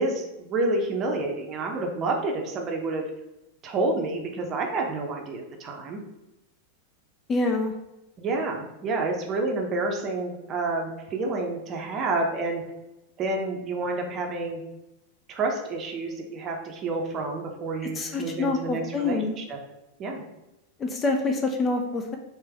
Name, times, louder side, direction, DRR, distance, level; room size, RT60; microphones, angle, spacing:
voice 1, 0.0-3.0 3.6-6.0 8.2-12.6 13.2-14.6 15.3-19.6 20.0-20.2, right 2 dB, 30° right, 2 dB, 0.7 m, -29 dB
voice 2, 7.3-7.7 17.8-19.4 20.8-22.2, left 3 dB, 20° left, 3 dB, 0.4 m, -26 dB
3.3 x 2.9 x 3.3 m, 0.96 s
figure-of-eight pair, 90°, 0 cm